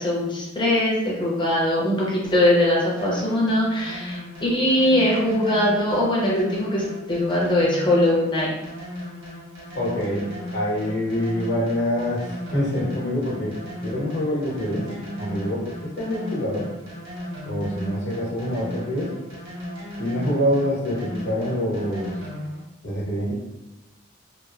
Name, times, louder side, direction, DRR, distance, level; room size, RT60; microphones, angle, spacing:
voice 1, 0.0-8.5, left 1 dB, 25° left, -5 dB, 0.7 m, -21 dB
sound 1, 3.0-22.6, equal, 75° right, 1.2 m, -36 dB
voice 2, 9.7-14.9 15.2-16.7 17.4-19.1 20.0-22.1 22.8-23.3, equal, 60° left, -6 dB, 1.0 m, -26 dB
3.0 x 2.0 x 2.4 m, 0.99 s
head